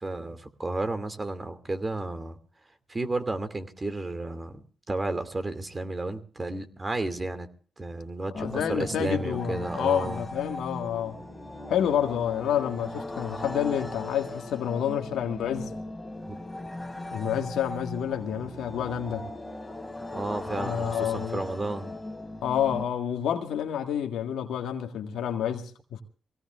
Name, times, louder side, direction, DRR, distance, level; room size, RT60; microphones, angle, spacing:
voice 1, 0.0-2.4 2.9-7.5 7.8-10.2 16.3-16.4 20.1-21.9, right 2 dB, 30° right, 2.5 m, -32 dB
voice 2, 8.3-11.2 11.7-15.7 17.1-19.3 20.5-21.4 22.4-26.0, left 9 dB, 85° left, 1.8 m, -29 dB
sound 1, 8.3-22.8, left 2 dB, 10° left, 3.2 m, -38 dB
24.5 x 17.5 x 2.5 m
supercardioid pair, 60°, 0 cm